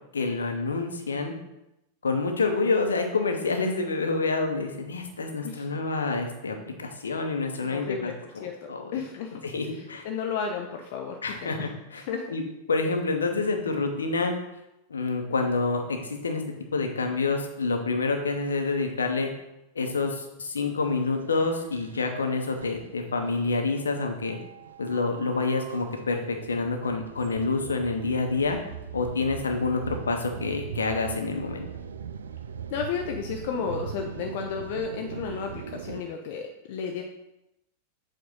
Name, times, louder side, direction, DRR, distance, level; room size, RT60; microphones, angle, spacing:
voice 1, 0.1-1.3 2.0-9.0 9.4-10.1 11.2-12.0 12.3-12.4 12.7-14.3 14.9-16.4 16.7-19.3 19.7-24.4 24.8-28.6 28.9-31.6, left 3 dB, 70° left, 4 dB, 0.9 m, -28 dB
voice 2, 7.6-9.4 10.0-11.7 12.0-12.3 32.7-37.0, left 6 dB, 50° left, 3 dB, 0.5 m, -33 dB
sound 1, 20.8-36.0, right 7 dB, 70° right, 0.3 m, -41 dB
7.5 x 2.6 x 5.5 m, 0.90 s
figure-of-eight pair, 90°, 0 cm